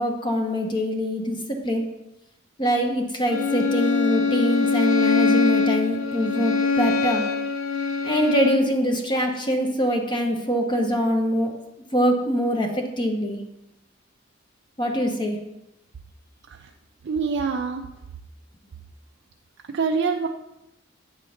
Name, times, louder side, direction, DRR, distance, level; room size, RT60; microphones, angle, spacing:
voice 1, 0.0-1.4 1.6-1.9 2.6-7.3 8.0-11.5 11.9-13.4 14.8-15.4, equal, 25° left, 2 dB, 0.9 m, -23 dB
Bowed string instrument, 3.3-8.7, left 4 dB, 70° left, 0.8 m, -23 dB
voice 2, 17.0-17.8 19.7-20.3, right 5 dB, 60° right, 3 dB, 0.4 m, -25 dB
8.6 x 3.7 x 6.4 m, 0.92 s
head